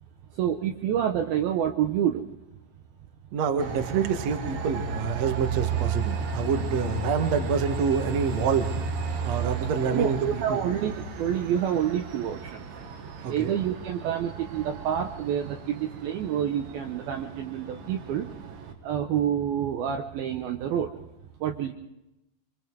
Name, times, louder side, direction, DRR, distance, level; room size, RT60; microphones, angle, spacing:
voice 1, 0.3-2.3 9.9-12.7 13.2-18.3 18.8-21.0 21.4-21.7, right 9 dB, 75° right, 4 dB, 2.4 m, -28 dB
voice 2, 3.3-8.7 9.2-10.6 13.2-13.6, right 6 dB, 55° right, 5 dB, 2.0 m, -27 dB
Train, 3.6-18.7, right 4 dB, 90° right, 4.3 m, -34 dB
25.5 x 25.0 x 4.7 m, 0.88 s
omnidirectional pair, 5.2 m